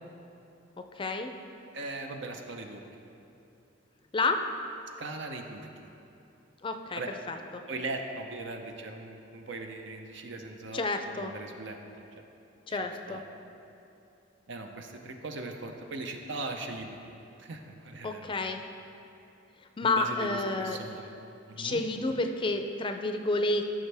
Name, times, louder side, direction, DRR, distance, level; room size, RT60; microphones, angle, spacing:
voice 1, 0.8-1.3 4.1-4.4 6.6-7.6 10.7-11.3 12.7-13.2 18.0-18.6 19.6-20.8 21.6-23.6, left 2 dB, 25° left, 6 dB, 0.4 m, -30 dB
voice 2, 1.7-2.8 5.0-5.7 7.0-7.2 7.7-10.8 11.2-11.8 12.7-12.8 13.1-13.2 14.5-17.0 17.4-18.2 19.8-21.1 21.5-21.8, right 2 dB, 65° right, 4 dB, 0.8 m, -39 dB
13.5 x 6.2 x 3.4 m, 2.9 s
head